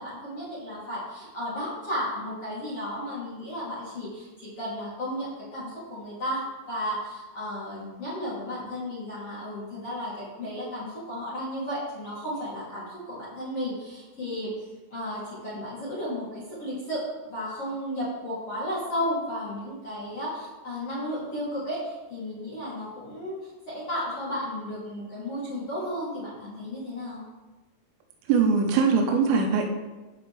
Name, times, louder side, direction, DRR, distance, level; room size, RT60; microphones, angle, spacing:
voice 1, 0.0-6.4 6.7-27.2, equal, 40° left, -9 dB, 2.6 m, -34 dB
voice 2, 28.3-29.6, right 5 dB, 80° right, 2 dB, 3.5 m, -21 dB
15.5 x 5.2 x 3.3 m, 1.2 s
omnidirectional pair, 5.9 m